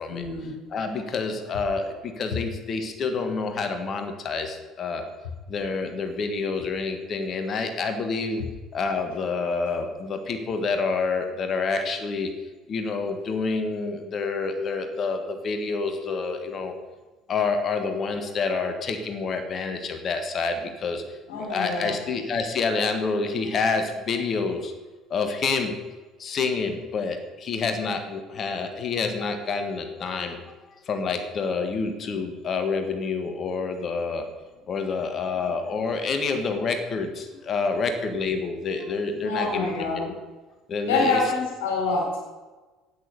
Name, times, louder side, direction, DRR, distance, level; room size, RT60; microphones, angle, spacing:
voice 1, 0.1-0.6 21.3-22.0 39.2-40.1 40.8-42.2, left 3 dB, 65° left, -2 dB, 4.2 m, -26 dB
voice 2, 0.7-5.0 5.5-8.4 8.7-12.3 12.7-16.7 17.3-21.0 21.4-24.7 25.1-25.8 26.2-30.4 30.9-34.3 34.7-40.2 40.7-41.2, left 4 dB, 40° left, 7 dB, 1.6 m, -28 dB
8.9 x 8.7 x 6.9 m, 1.2 s
figure-of-eight pair, 55°, 0 cm